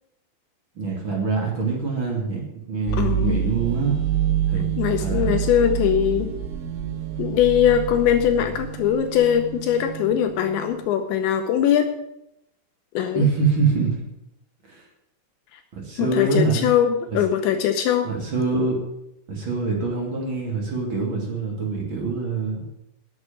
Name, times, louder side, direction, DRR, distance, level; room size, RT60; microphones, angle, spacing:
voice 1, 0.7-3.9 4.5-4.6 5.0-5.4 13.1-14.0 14.6-14.8 15.7-16.7 17.1-17.2 18.0-18.8 19.3-22.6, right 4 dB, 35° right, 0 dB, 2.1 m, -24 dB
sound 1, 2.9-10.8, right 9 dB, 75° right, 3.5 m, -27 dB
voice 2, 3.0-3.4 4.8-6.3 7.2-11.9 12.9-13.3 16.0-18.1, left 10 dB, 75° left, 6 dB, 2.8 m, -21 dB
11.0 x 7.3 x 9.2 m, 0.82 s
omnidirectional pair, 5.8 m